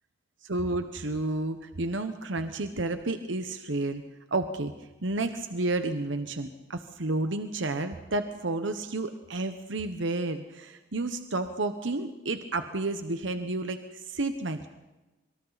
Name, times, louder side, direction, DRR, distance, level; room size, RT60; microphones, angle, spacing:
voice 1, 0.5-4.0 4.3-14.7, right 2 dB, 75° right, 8 dB, 1.1 m, -31 dB
25.5 x 24.5 x 4.1 m, 1.1 s
head